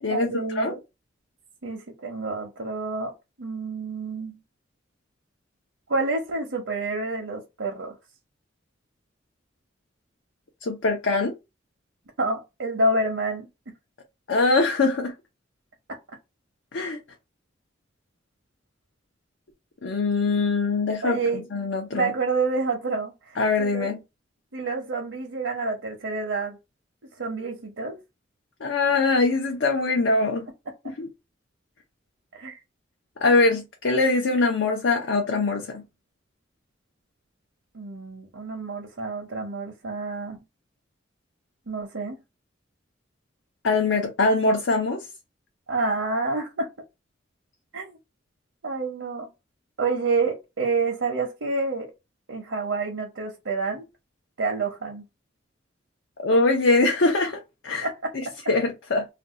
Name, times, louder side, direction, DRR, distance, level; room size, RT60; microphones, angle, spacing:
voice 1, 0.1-0.8 1.6-3.1 3.4-4.4 5.9-8.0 12.2-13.5 21.0-21.4 21.9-23.9 24.5-26.6 27.2-28.0 32.3-32.6 37.7-40.4 41.7-42.2 45.7-46.7 47.7-47.9 48.6-49.3 49.8-51.9 52.3-53.9 54.4-55.0 57.8-57.9, right 3 dB, 85° right, 0.8 m, -28 dB
voice 2, 10.6-11.3 14.3-15.1 16.7-17.0 19.8-21.2 21.5-22.1 23.4-24.0 28.6-30.5 31.0-31.1 33.2-35.8 43.6-45.0 56.2-57.9 58.5-59.1, left 3 dB, 80° left, 0.6 m, -22 dB
2.6 x 2.3 x 3.7 m
head